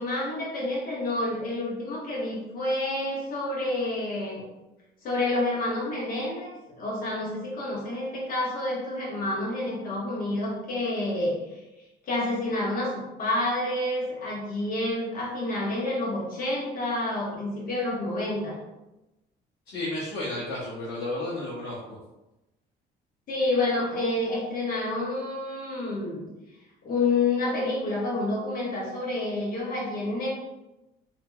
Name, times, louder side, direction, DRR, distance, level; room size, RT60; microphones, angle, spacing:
voice 1, 0.0-4.4 5.0-6.5 6.8-11.3 12.0-18.6 23.3-26.3 26.8-30.3, left 2 dB, 60° left, -4 dB, 1.0 m, -28 dB
voice 2, 19.7-22.0, left 1 dB, 85° left, -8 dB, 0.9 m, -32 dB
2.8 x 2.5 x 2.2 m, 0.99 s
cardioid pair, 110°, 17 cm